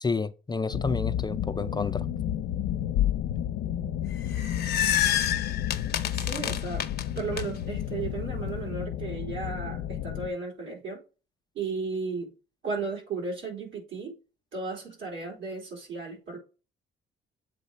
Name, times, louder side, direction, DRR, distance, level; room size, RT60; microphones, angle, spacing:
voice 1, 0.0-2.1, left 4 dB, 20° left, 0.4 m, -30 dB
sound 1, 0.7-10.3, left 11 dB, 90° left, 0.5 m, -31 dB
sound 2, 4.1-7.4, left 11 dB, 55° left, 0.7 m, -28 dB
voice 2, 6.1-6.8 7.2-11.0 11.5-12.3 12.6-14.1 14.5-16.4, right 4 dB, 75° right, 4.2 m, -34 dB
8.0 x 3.2 x 5.2 m
cardioid pair, 90°, 20 cm